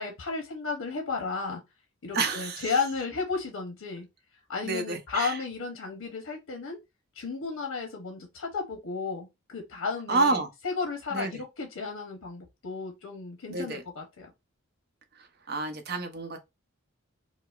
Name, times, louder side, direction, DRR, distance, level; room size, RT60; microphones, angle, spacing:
voice 1, 0.0-1.6 2.0-4.1 4.5-6.8 7.2-14.3, left 4 dB, 85° left, 0.8 m, -33 dB
voice 2, 2.1-2.7 4.6-5.4 10.1-10.5 11.1-11.4 13.5-13.8 15.2-16.4, right 3 dB, 45° right, 0.7 m, -29 dB
4.7 x 2.0 x 2.4 m
head